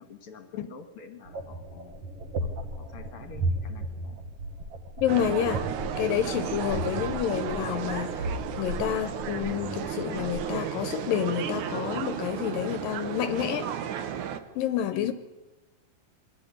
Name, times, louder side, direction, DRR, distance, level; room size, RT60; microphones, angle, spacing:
voice 1, 0.0-1.9 2.4-2.5 2.8-4.2 14.9-15.1, left 8 dB, 45° left, 2.4 m, -45 dB
sound 1, 1.3-10.5, right 1 dB, 45° right, 2.3 m, -35 dB
voice 2, 5.0-5.7 6.0-8.3 8.6-13.7 14.2-15.1, left 10 dB, 75° left, 2.5 m, -29 dB
sound 2, 5.1-14.4, right 9 dB, 65° right, 2.4 m, -33 dB
22.5 x 14.5 x 10.0 m
omnidirectional pair, 4.2 m